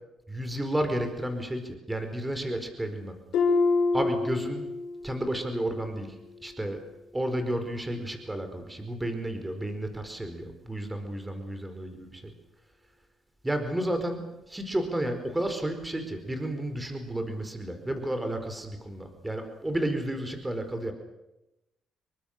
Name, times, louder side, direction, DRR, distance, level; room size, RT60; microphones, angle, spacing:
voice 1, 0.3-3.2 3.9-4.6 5.0-6.1 6.4-6.8 7.1-12.3 13.4-14.2 14.5-20.9, right 1 dB, 10° right, 7 dB, 4.6 m, -32 dB
Harp, 3.3-5.1 5.5-5.9 6.4-6.5, left 4 dB, 80° left, 4.8 m, -26 dB
28.0 x 23.5 x 6.7 m, 0.93 s
cardioid pair, 90°, 0 cm